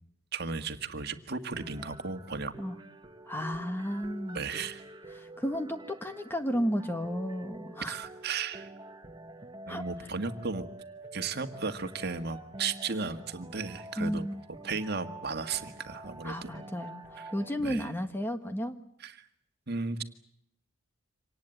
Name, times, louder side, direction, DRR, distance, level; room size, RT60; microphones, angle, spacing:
voice 1, 0.3-2.5 4.3-4.8 7.8-8.7 9.7-10.7 11.1-14.3 14.6-16.5 17.2-17.3 17.6-17.9 19.0-19.3 19.7-20.0, right 4 dB, 50° right, 8 dB, 1.8 m, -35 dB
sound 1, 1.5-17.5, right 2 dB, 20° right, 1.1 m, -48 dB
voice 2, 3.3-4.4 5.2-7.9 9.7-9.8 14.0-14.4 16.2-18.8, equal, 10° left, 7 dB, 1.6 m, -33 dB
26.0 x 19.0 x 9.1 m, 0.72 s
head